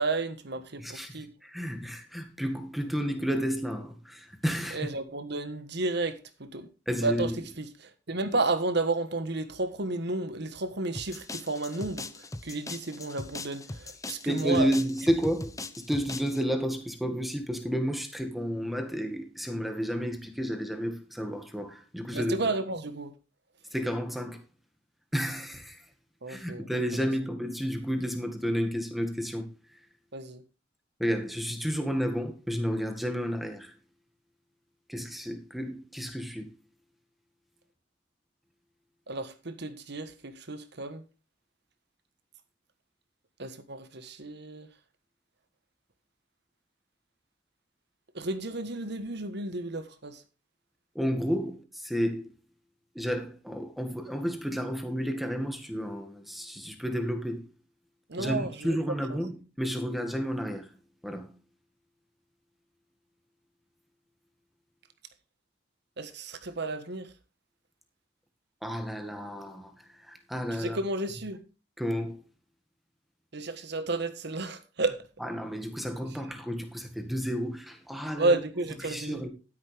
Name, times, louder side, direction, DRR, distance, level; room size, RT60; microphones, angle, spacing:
voice 1, 0.0-1.3 4.7-6.7 7.0-14.7 22.1-23.2 26.2-26.7 30.1-30.4 39.1-41.0 43.4-44.7 48.1-50.2 58.1-58.8 59.1-59.2 66.0-67.1 70.6-71.4 73.3-75.0 78.2-79.2, right 2 dB, 65° right, 1.5 m, -32 dB
voice 2, 0.8-4.9 6.9-7.3 14.3-22.3 23.7-24.4 25.1-25.8 26.3-29.5 31.0-33.7 34.9-36.5 51.0-52.3 52.9-57.5 58.2-60.7 61.0-61.3 68.6-70.8 71.8-72.2 75.2-78.3 78.8-79.3, equal, ahead, 2.0 m, -31 dB
sound 1, 10.9-16.4, left 2 dB, 20° left, 0.9 m, -40 dB
12.0 x 10.5 x 3.5 m
head